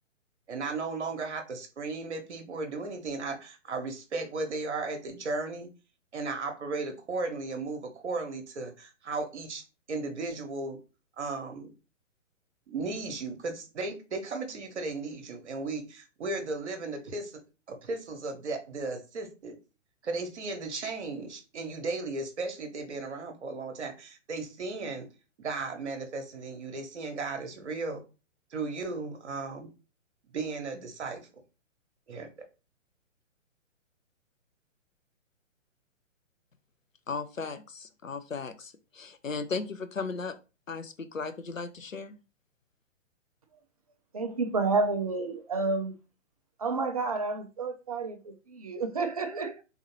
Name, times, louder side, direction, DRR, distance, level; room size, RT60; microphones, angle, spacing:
voice 1, 0.5-5.7 6.1-9.6 9.9-10.8 11.2-11.7 12.7-17.3 17.7-19.6 20.0-25.1 25.4-28.0 28.5-29.7 30.3-31.2 32.1-32.3, right 3 dB, 60° right, 1.1 m, -35 dB
voice 2, 37.1-40.4 40.7-42.1, left 4 dB, 90° left, 0.7 m, -36 dB
voice 3, 44.1-45.9 46.6-49.6, right 3 dB, 30° right, 0.4 m, -30 dB
3.6 x 3.0 x 3.0 m
figure-of-eight pair, 125°, 38 cm